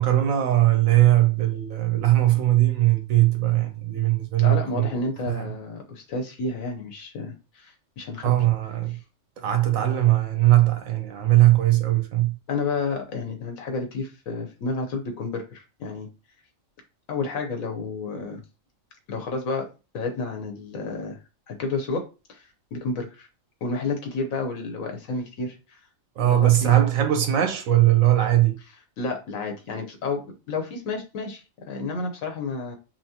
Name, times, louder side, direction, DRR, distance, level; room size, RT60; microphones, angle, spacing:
voice 1, 0.0-4.9 5.3-5.5 8.2-9.0 9.4-12.3 26.2-28.6, right 14 dB, 85° right, 1.1 m, -20 dB
voice 2, 4.4-8.3 12.5-16.1 17.1-18.4 19.1-19.7 19.9-21.2 21.5-22.0 22.3-23.3 23.6-25.6 26.2-26.7 29.0-30.2 30.5-32.8, left 3 dB, 85° left, 1.3 m, -30 dB
5.6 x 2.1 x 2.8 m
omnidirectional pair, 1.4 m